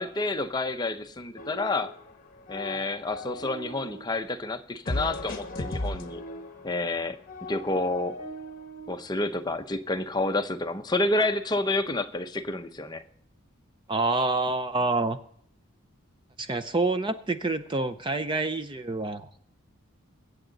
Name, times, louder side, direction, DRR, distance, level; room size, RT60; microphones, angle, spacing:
voice 1, 0.0-1.9 2.5-6.2 6.6-7.2 7.5-8.2 8.9-13.0, left 2 dB, 20° left, 7 dB, 0.7 m, -29 dB
sound 1, 1.4-2.1 2.4-4.0 4.9-8.9, left 1 dB, 40° left, 1.2 m, -37 dB
voice 2, 13.9-15.2 16.4-19.3, right 3 dB, 20° right, 10 dB, 0.5 m, -27 dB
23.0 x 8.1 x 3.9 m, 0.63 s
head